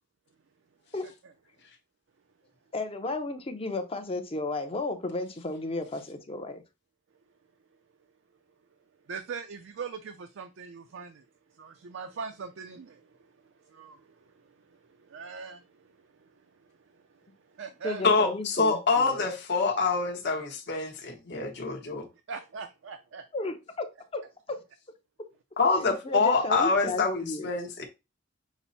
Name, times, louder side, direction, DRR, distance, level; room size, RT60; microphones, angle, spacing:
voice 1, 2.7-6.6 17.8-19.2 23.3-23.9 24.1-24.2 24.5-24.6 25.7-27.5, left 2 dB, 30° left, 0.6 m, -33 dB
voice 2, 9.1-18.0 22.1-23.2, right 5 dB, 65° right, 0.5 m, -42 dB
voice 3, 18.0-22.1 25.6-27.9, left 4 dB, 60° left, 1.0 m, -26 dB
6.0 x 2.1 x 4.1 m
head